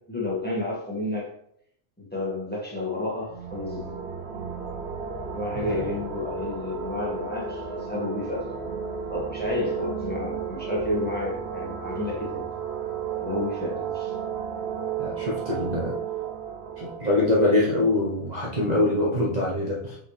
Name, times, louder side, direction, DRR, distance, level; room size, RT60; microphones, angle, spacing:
voice 1, 0.1-1.3 2.0-3.9 5.3-8.7 9.1-12.4 13.2-14.1, left 2 dB, 10° left, -4 dB, 1.7 m, -31 dB
sound 1, 3.1-18.7, right 6 dB, 60° right, 1.0 m, -34 dB
voice 2, 5.6-5.9 15.0-16.0 16.8-20.0, left 2 dB, 35° right, -4 dB, 1.1 m, -24 dB
5.7 x 5.5 x 3.3 m, 0.70 s
omnidirectional pair, 1.3 m